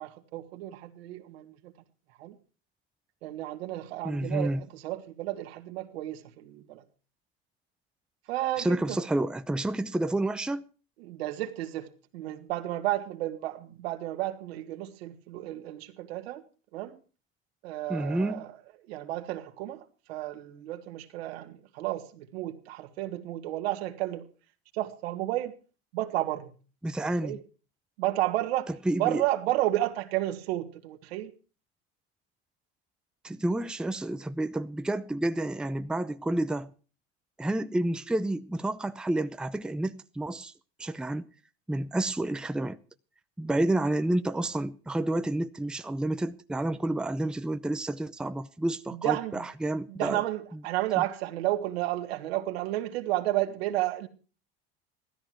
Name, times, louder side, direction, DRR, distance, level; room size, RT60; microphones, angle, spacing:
voice 1, 0.0-1.7 2.2-2.3 3.2-6.8 8.3-8.8 11.0-11.9 12.1-16.4 16.7-16.9 17.6-18.5 18.9-19.8 20.1-24.3 24.7-25.5 25.9-26.5 27.2-27.4 28.0-28.7 29.0-31.3 49.0-49.5 49.9-54.1, right 15 dB, 85° right, 2.0 m, -32 dB
voice 2, 4.0-4.6 8.6-10.7 17.9-18.5 26.8-27.4 28.7-29.2 33.2-36.7 37.4-40.5 40.8-41.3 41.7-42.8 43.4-50.2 51.0-51.1, right 1 dB, 5° right, 0.6 m, -30 dB
15.5 x 13.5 x 4.6 m
supercardioid pair, 105°, 31 cm